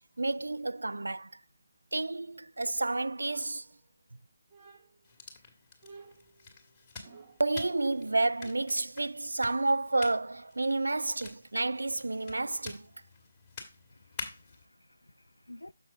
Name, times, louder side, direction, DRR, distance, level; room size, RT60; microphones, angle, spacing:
voice 1, 0.2-1.3 1.9-3.7 7.4-12.9, right 2 dB, 70° right, 0.3 m, -30 dB
sound 1, 3.2-4.1 4.5-5.1 5.8-7.6, right 4 dB, 25° right, 1.5 m, -55 dB
sound 2, 5.0-14.6, left 4 dB, 20° left, 1.9 m, -48 dB
voice 2, 13.9-15.7, left 1 dB, 80° left, 0.3 m, -53 dB
7.0 x 6.0 x 3.7 m
figure-of-eight pair, 150°, 0 cm